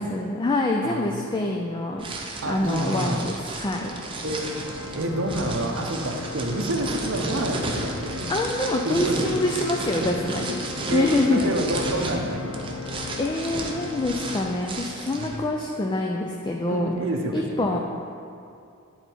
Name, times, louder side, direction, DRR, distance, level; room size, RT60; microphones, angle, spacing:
voice 1, 0.0-2.1 2.4-3.9 8.3-10.6 10.9-11.5 13.2-16.9 17.3-17.8, left 2 dB, 20° left, 1 dB, 0.4 m, -25 dB
voice 2, 0.8-1.3 2.4-3.3 4.2-4.4 4.9-8.3 8.8-9.4 10.0-10.6 10.9-12.8 15.2-15.3 16.7-17.8, right 1 dB, 60° right, 2 dB, 0.7 m, -28 dB
sound 1, 2.0-15.4, right 2 dB, 25° right, 0.7 m, -34 dB
Organ, 4.3-15.5, left 5 dB, 75° left, 0.5 m, -38 dB
9.8 x 4.0 x 4.5 m, 2.5 s
head